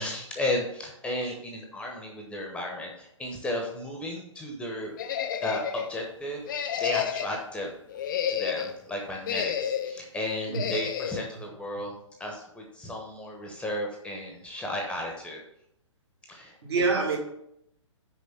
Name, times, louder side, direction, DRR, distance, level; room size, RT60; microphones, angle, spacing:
voice 1, 0.0-5.0 5.4-7.7 8.3-11.9 12.2-15.4 16.3-16.8, left 1 dB, 5° left, 1 dB, 1.0 m, -34 dB
sound 1, 5.0-5.9 6.5-7.4 7.9-8.8 9.2-10.0 10.5-11.2, left 9 dB, 40° left, 0.6 m, -30 dB
voice 2, 16.6-17.2, right 4 dB, 55° right, 1 dB, 2.4 m, -26 dB
6.3 x 5.2 x 6.7 m, 0.76 s
figure-of-eight pair, 120°, 16 cm